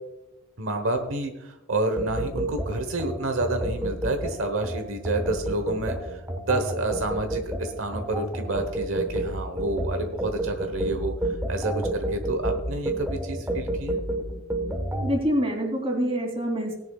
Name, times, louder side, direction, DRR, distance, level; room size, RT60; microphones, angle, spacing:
voice 1, 0.6-11.1 11.5-14.0, right 2 dB, 80° right, 6 dB, 1.1 m, -29 dB
sound 1, 2.0-15.1, right 1 dB, 10° right, 1.2 m, -29 dB
voice 2, 15.0-16.7, equal, 30° right, 2 dB, 2.9 m, -26 dB
18.0 x 10.5 x 2.4 m, 0.98 s
head